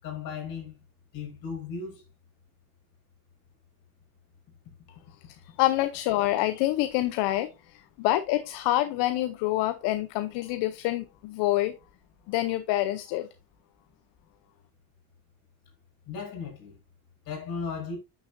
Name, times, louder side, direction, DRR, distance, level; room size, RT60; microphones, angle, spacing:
voice 1, 0.0-0.7 1.1-2.0 16.1-16.7 17.3-18.0, left 5 dB, 55° left, 5.8 m, -36 dB
voice 2, 5.4-11.7 12.3-13.3, left 15 dB, 75° left, 0.8 m, -27 dB
10.5 x 6.9 x 2.6 m
cardioid pair, 145°, 41 cm